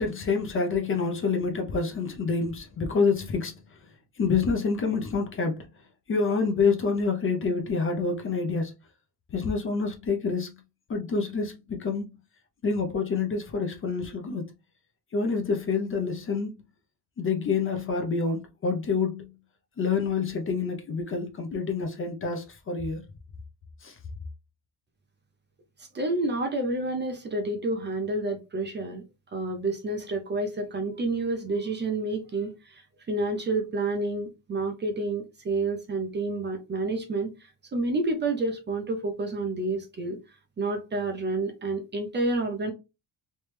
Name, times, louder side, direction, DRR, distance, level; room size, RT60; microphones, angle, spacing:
voice 1, 0.0-3.5 4.2-5.6 6.1-8.7 9.3-10.5 10.9-12.1 12.6-14.5 15.1-16.6 17.2-19.3 19.8-23.0 23.8-24.0, left 4 dB, 30° left, 0.5 m, -27 dB
voice 2, 25.8-29.0 29.3-40.2 40.6-42.7, right 2 dB, 25° right, 0.5 m, -29 dB
3.2 x 3.1 x 3.2 m
cardioid pair, 180°, 43 cm